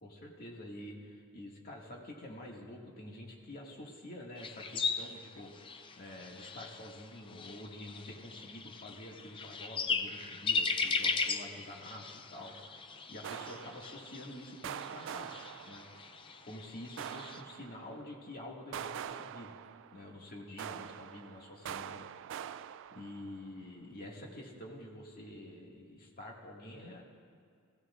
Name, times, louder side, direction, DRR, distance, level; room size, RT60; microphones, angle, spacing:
voice 1, 0.0-12.7 13.1-15.8 16.4-19.5 19.9-22.4 22.9-27.0, left 1 dB, 40° left, -2 dB, 1.9 m, -48 dB
sound 1, 4.4-17.4, left 4 dB, 25° left, 0.4 m, -38 dB
sound 2, 12.4-12.8 13.2-14.3 14.6-16.2 17.0-18.1 18.7-20.2 20.6-23.5, right 9 dB, 60° right, 0.3 m, -45 dB
19.0 x 15.5 x 2.5 m, 2.2 s
head